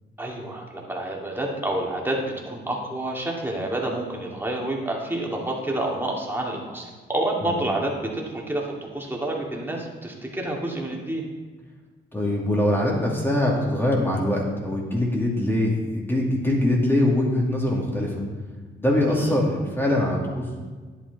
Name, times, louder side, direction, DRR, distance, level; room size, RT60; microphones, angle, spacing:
voice 1, 0.2-11.2 19.1-19.3, right 1 dB, 10° right, -2 dB, 2.3 m, -29 dB
voice 2, 12.1-18.1 18.8-20.4, left 1 dB, 10° left, -2 dB, 2.5 m, -23 dB
10.5 x 8.6 x 4.0 m, 1.4 s
cardioid pair, 95°, 20 cm